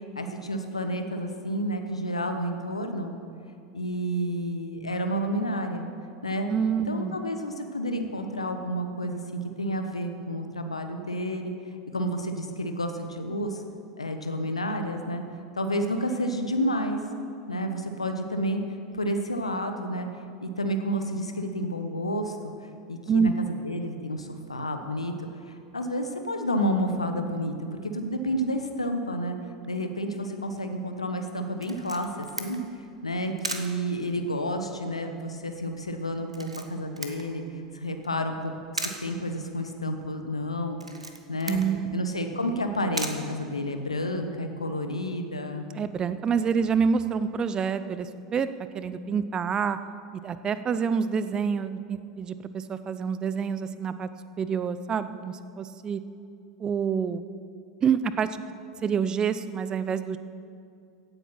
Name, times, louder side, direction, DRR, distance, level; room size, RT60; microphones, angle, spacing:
voice 1, 0.2-3.1 3.7-5.9 6.2-6.5 6.9-11.5 11.9-13.6 14.0-15.2 15.5-17.0 17.5-18.6 18.9-20.1 20.4-22.4 22.9-25.1 25.4-27.5 27.8-29.4 29.7-32.6 33.0-37.4 37.7-38.5 38.8-40.8 41.3-41.6 41.9-45.7, equal, 80° left, 6 dB, 1.1 m, -30 dB
voice 2, 6.5-7.2 23.1-23.6 41.5-41.9 45.7-48.5 48.7-49.8 50.2-54.1 54.4-56.0 56.6-57.2 57.8-58.3 58.8-60.2, right 6 dB, 25° right, 13 dB, 0.6 m, -27 dB
Camera, 31.6-44.1, right 2 dB, 85° right, 1.0 m, -40 dB
16.5 x 8.4 x 5.7 m, 2.5 s
figure-of-eight pair, 85°, 3 cm